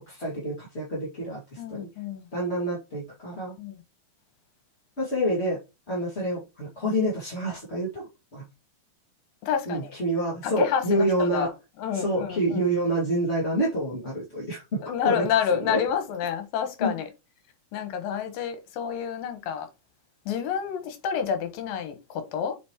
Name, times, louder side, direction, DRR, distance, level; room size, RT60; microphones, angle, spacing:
voice 1, 0.0-1.9 2.3-3.5 5.0-5.6 5.9-8.0 8.3-8.4 9.7-11.5 11.9-15.2 15.6-15.8 16.8-16.9, right 1 dB, 20° left, 2.1 m, -28 dB
voice 2, 1.6-2.3 3.6-3.8 9.4-9.9 10.4-11.5 11.8-12.7 14.9-17.1 17.7-19.7 20.3-22.6, left 7 dB, 85° left, 3.1 m, -29 dB
8.3 x 5.2 x 3.0 m
omnidirectional pair, 4.0 m